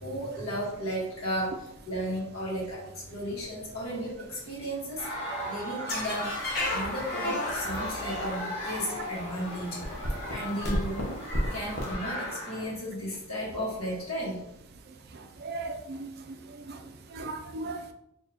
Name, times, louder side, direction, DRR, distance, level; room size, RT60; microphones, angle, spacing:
voice 1, 0.0-6.3 6.7-9.8 10.3-11.2 11.5-14.4, equal, 80° left, -5 dB, 1.5 m, -34 dB
sound 1, 5.0-12.6, equal, 25° left, 1.5 m, -37 dB
sound 2, 5.9-8.8 9.5-9.6 9.8-11.9, left 1 dB, 50° left, 0.8 m, -33 dB
voice 2, 15.4-16.8 17.1-17.9, right 2 dB, 45° right, 6 dB, 0.4 m, -37 dB
4.1 x 2.8 x 2.8 m, 0.79 s
head